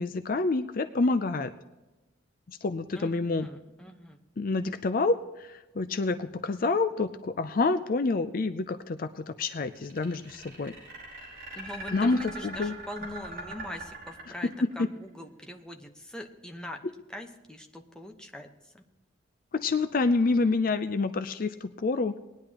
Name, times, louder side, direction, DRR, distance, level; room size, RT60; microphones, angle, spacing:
voice 1, 0.0-1.5 2.5-3.5 4.4-10.7 11.9-12.7 14.6-14.9 19.5-22.2, left 3 dB, 45° left, 10 dB, 0.4 m, -28 dB
voice 2, 2.9-4.2 11.6-16.8 17.1-18.8, left 1 dB, 5° left, 3 dB, 1.0 m, -42 dB
sound 1, 9.8-14.8, right 2 dB, 45° right, 5.0 m, -41 dB
19.5 x 10.5 x 2.9 m, 1.1 s
head